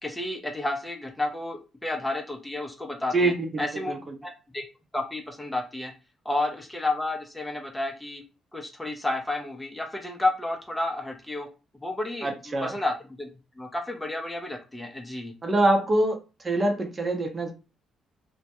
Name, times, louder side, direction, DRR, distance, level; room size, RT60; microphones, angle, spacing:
voice 1, 0.0-3.3 3.6-4.6 4.9-5.9 6.2-8.2 8.5-11.5 11.8-13.3 13.6-15.3, left 2 dB, 10° left, 2 dB, 0.6 m, -31 dB
voice 2, 3.1-4.1 12.2-12.7 15.4-17.5, right 2 dB, 35° right, 3 dB, 0.7 m, -25 dB
2.2 x 2.1 x 2.9 m, 0.31 s
supercardioid pair, 65°, 0 cm